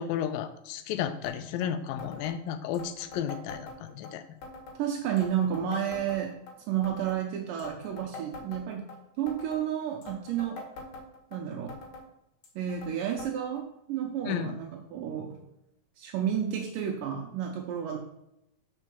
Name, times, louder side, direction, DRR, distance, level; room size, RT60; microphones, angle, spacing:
voice 1, 0.0-4.2 14.2-14.5, left 9 dB, 85° left, 10 dB, 2.3 m, -33 dB
sound 1, 1.2-1.4 1.6-1.7 2.0-2.3 2.7-4.1 4.4-4.8 5.2-6.5 6.8-7.2 7.6-9.0 9.3-9.6 10.0-11.4 11.7-12.1 12.4-12.9 13.2-13.3 13.6-13.7 14.4-14.5 15.3-15.4, left 3 dB, 70° left, 2.8 m, -44 dB
voice 2, 4.8-6.4 6.7-8.9 9.2-10.6 11.3-11.8 12.6-15.4 16.0-18.0, right 9 dB, 80° right, 2 dB, 2.2 m, -31 dB
5.5 x 4.5 x 6.2 m, 0.84 s
omnidirectional pair, 4.0 m